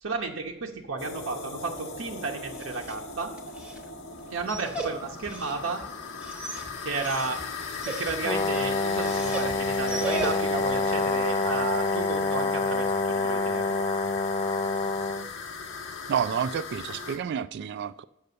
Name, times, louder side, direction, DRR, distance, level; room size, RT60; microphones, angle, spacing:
voice 1, 0.0-3.3 4.3-5.8 6.8-7.4 7.8-13.9, right 4 dB, 85° right, 0.8 m, -33 dB
sound 1, 1.0-17.2, left 5 dB, 80° left, 1.2 m, -38 dB
Dog, 2.4-10.7, right 2 dB, 5° right, 1.1 m, -38 dB
Brass instrument, 8.2-15.3, left 3 dB, 25° left, 0.3 m, -27 dB
voice 2, 16.1-18.1, right 8 dB, 60° right, 0.3 m, -29 dB
6.7 x 6.4 x 6.8 m
head